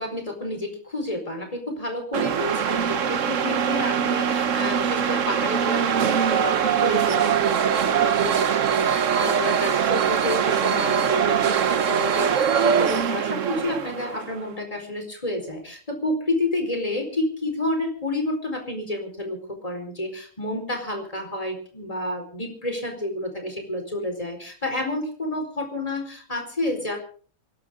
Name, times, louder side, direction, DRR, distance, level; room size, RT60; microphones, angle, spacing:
voice 1, 0.0-27.0, left 1 dB, 25° left, 4 dB, 4.8 m, -30 dB
sound 1, 2.1-14.4, right 8 dB, 65° right, 1.3 m, -22 dB
29.0 x 12.0 x 3.8 m, 0.43 s
omnidirectional pair, 1.5 m